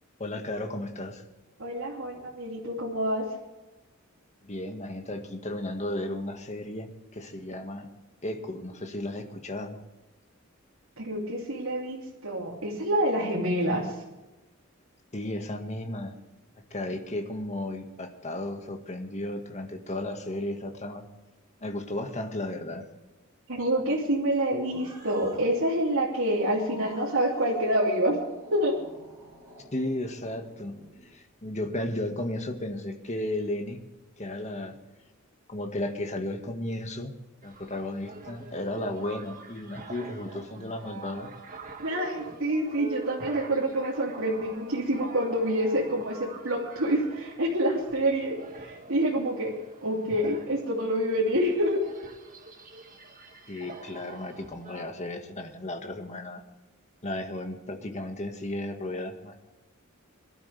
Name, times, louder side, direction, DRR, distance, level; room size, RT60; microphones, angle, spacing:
voice 1, 0.2-1.2 4.4-7.9 8.2-9.8 15.1-16.1 16.7-21.1 21.6-22.9 29.7-30.8 31.1-33.8 34.2-34.8 35.5-37.1 37.4-41.3 53.5-56.4 57.0-59.3, left 1 dB, 35° left, 4 dB, 1.8 m, -34 dB
voice 2, 1.6-3.4 11.0-14.0 23.5-28.2 28.5-28.8 41.8-49.5 49.8-51.8, right 1 dB, 80° right, -4 dB, 3.0 m, -27 dB
Growling, 24.3-31.1, right 1 dB, 15° right, 6.3 m, -49 dB
sound 1, 37.4-54.8, right 3 dB, 40° right, 2.0 m, -45 dB
23.0 x 12.0 x 3.5 m, 1.0 s
head